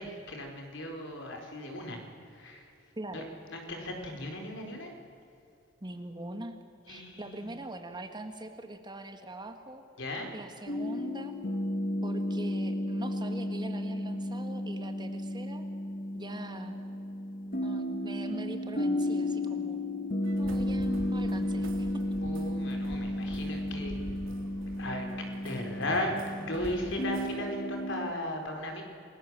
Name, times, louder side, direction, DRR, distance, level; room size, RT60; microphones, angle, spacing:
voice 1, 0.0-2.7 3.1-4.9 6.9-7.5 10.0-10.3 22.2-24.0 24.8-25.1 25.4-28.8, left 1 dB, 65° left, 3 dB, 4.5 m, -36 dB
voice 2, 5.8-6.6 6.9-9.8 10.3-11.3 12.0-15.6 16.1-16.8 17.5-19.8 20.4-21.9, right 1 dB, 20° right, 6 dB, 1.7 m, -42 dB
sound 1, 10.7-28.1, left 1 dB, 45° left, 1.7 m, -33 dB
sound 2, 20.2-27.4, right 1 dB, 75° right, 3.0 m, -46 dB
28.0 x 20.5 x 7.6 m, 2.6 s
head